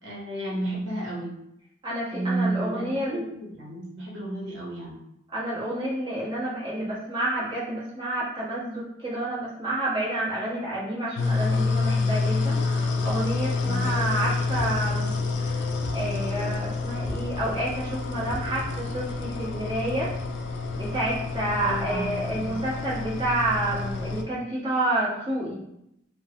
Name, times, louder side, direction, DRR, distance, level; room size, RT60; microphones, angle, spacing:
voice 1, 0.0-1.3 2.1-5.0 13.6-13.9 21.5-22.1 22.5-22.6, right 2 dB, 65° right, -4 dB, 1.0 m, -32 dB
voice 2, 1.8-3.2 5.3-15.1 15.4-15.6 15.9-20.1 20.8-25.6, right 1 dB, 25° right, -8 dB, 1.1 m, -29 dB
sound 1, 11.2-24.2, left 3 dB, 60° left, 0.3 m, -28 dB
sound 2, 14.5-15.2 15.8-16.5 17.0-17.7 18.3-18.9, right 1 dB, 40° right, 0.7 m, -39 dB
3.6 x 2.1 x 2.9 m, 0.80 s
head